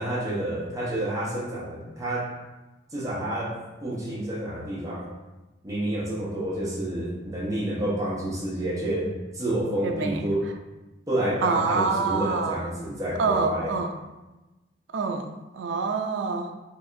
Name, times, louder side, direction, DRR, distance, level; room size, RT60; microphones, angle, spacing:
voice 1, 0.0-2.3 2.9-5.1 5.6-10.5 11.1-13.7, right 1 dB, 20° right, -6 dB, 0.8 m, -29 dB
voice 2, 9.8-10.2 11.4-12.6 13.2-13.9 14.9-16.5, right 4 dB, 80° right, 5 dB, 0.4 m, -26 dB
4.6 x 2.4 x 2.5 m, 1.1 s
head